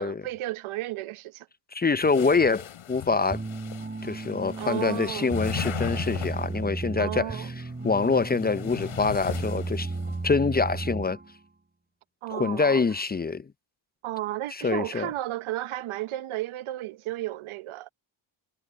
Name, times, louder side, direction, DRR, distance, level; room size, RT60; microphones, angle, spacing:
voice 1, 0.0-1.5 4.6-5.3 7.0-7.5 12.2-12.8 14.0-17.9, right 15 dB, 85° right, 1.0 m, -33 dB
voice 2, 1.7-3.4 4.0-7.5 7.8-9.9 10.2-11.2 12.3-13.5 14.5-15.1, left 4 dB, 20° left, 0.5 m, -25 dB
sound 1, 2.0-6.7 7.7-10.2, left 11 dB, 75° left, 6.8 m, -38 dB
sound 2, 3.3-11.4, right 3 dB, 20° right, 5.8 m, -34 dB
cardioid pair, 80°, 48 cm